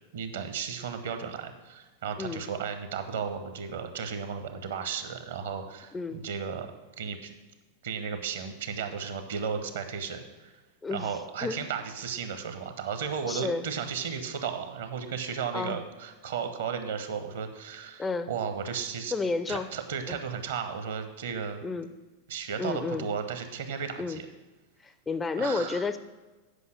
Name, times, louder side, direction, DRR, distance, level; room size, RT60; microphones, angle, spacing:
voice 1, 0.1-6.7 7.0-7.3 7.8-10.6 10.9-19.1 19.5-21.6 22.3-24.3 25.4-25.9, right 6 dB, 60° right, 8 dB, 1.0 m, -34 dB
voice 2, 5.9-6.3 10.8-11.6 13.2-13.7 15.5-15.8 18.0-18.3 19.1-19.7 20.1-20.2 21.6-21.9 22.6-23.1 24.0-24.2 24.8-26.0, left 4 dB, 15° left, 11 dB, 0.4 m, -31 dB
8.2 x 5.5 x 6.5 m, 1.2 s
figure-of-eight pair, 90°, 0 cm